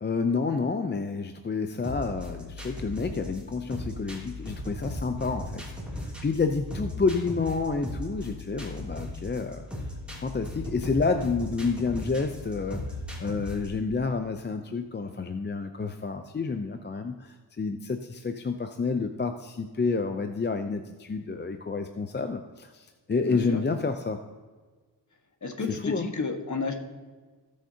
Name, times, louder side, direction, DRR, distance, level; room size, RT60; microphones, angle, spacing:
voice 1, 0.0-5.6 6.0-9.6 10.2-12.8 13.2-24.2 25.7-26.1, left 4 dB, 25° left, 6 dB, 0.6 m, -29 dB
sound 1, 1.8-13.8, left 1 dB, 5° right, 2.8 m, -37 dB
voice 2, 23.2-23.6 25.4-26.7, left 4 dB, 45° left, 4 dB, 1.6 m, -31 dB
17.5 x 6.5 x 2.8 m, 1.4 s
cardioid pair, 80°, 42 cm